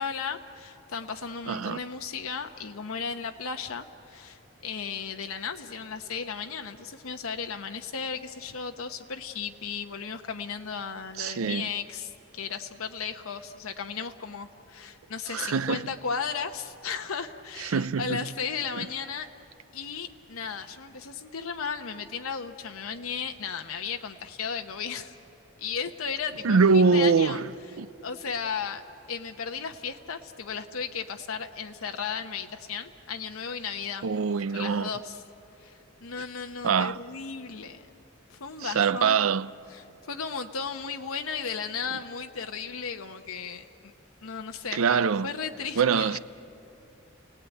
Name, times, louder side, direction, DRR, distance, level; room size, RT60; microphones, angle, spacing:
voice 1, 0.0-19.3 19.7-25.1 25.6-27.4 28.0-28.8 29.1-34.1 34.5-35.2 35.6-37.9 38.3-39.3 39.7-43.9 44.2-46.2, left 6 dB, 85° left, 1.0 m, -35 dB
voice 2, 1.5-1.8 11.2-11.7 15.3-15.8 17.6-18.3 18.8-18.9 26.4-27.5 27.8-27.9 34.0-34.9 36.6-37.0 38.6-39.5 44.7-45.3 45.8-46.2, right 5 dB, 85° right, 0.5 m, -24 dB
30.0 x 18.5 x 9.2 m
head